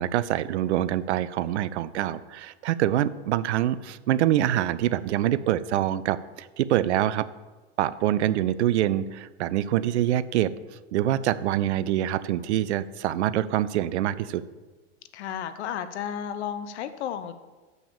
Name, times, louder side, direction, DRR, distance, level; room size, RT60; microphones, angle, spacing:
voice 1, 0.0-7.3 7.8-10.5 10.9-14.4, right 12 dB, 70° right, 16 dB, 0.6 m, -25 dB
voice 2, 15.1-17.3, left 9 dB, 70° left, 12 dB, 0.9 m, -33 dB
7.0 x 6.1 x 7.0 m, 1.2 s
hypercardioid pair, 95°, 35 cm